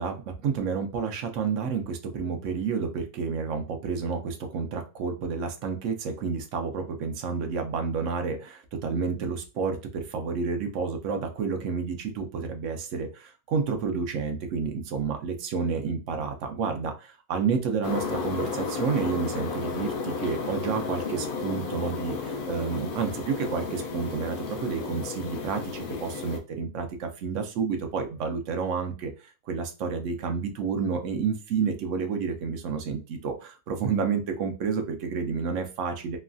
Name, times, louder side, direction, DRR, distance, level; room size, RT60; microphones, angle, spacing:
voice 1, 0.0-24.4 24.6-29.1 29.5-36.2, right 5 dB, 70° right, 5 dB, 0.8 m, -30 dB
sound 1, 17.8-26.4, left 4 dB, 80° left, 0.4 m, -33 dB
3.1 x 2.2 x 2.5 m, 0.32 s
omnidirectional pair, 1.6 m